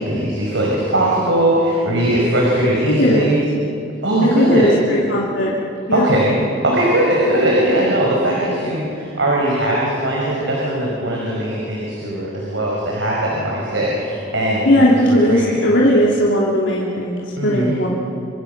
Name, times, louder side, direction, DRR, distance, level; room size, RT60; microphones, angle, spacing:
voice 1, 0.0-3.4 4.0-4.7 5.9-6.4 6.6-15.6 17.4-17.8, right 1 dB, 80° right, -3 dB, 5.6 m, -19 dB
voice 2, 2.9-3.3 4.2-5.6 5.9-6.1 14.6-17.9, equal, 85° left, -5 dB, 3.1 m, -17 dB
28.0 x 25.0 x 6.8 m, 2.7 s
head